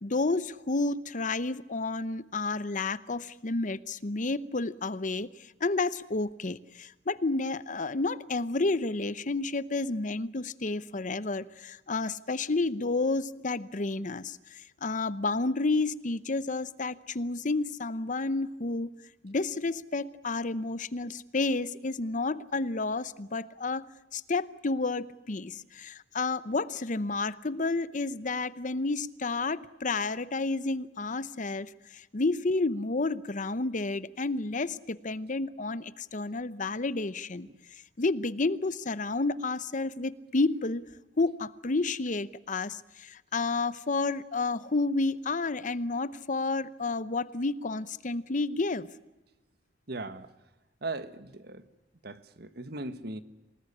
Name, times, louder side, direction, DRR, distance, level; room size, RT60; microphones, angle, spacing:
voice 1, 0.0-5.3 5.6-18.9 19.2-23.8 24.1-37.5 38.0-40.9 41.2-48.9, left 3 dB, 45° left, 16 dB, 0.8 m, -30 dB
voice 2, 49.9-50.3 50.8-51.6 52.0-53.2, right 2 dB, 65° right, 12 dB, 1.5 m, -38 dB
26.5 x 19.0 x 9.9 m, 1.0 s
head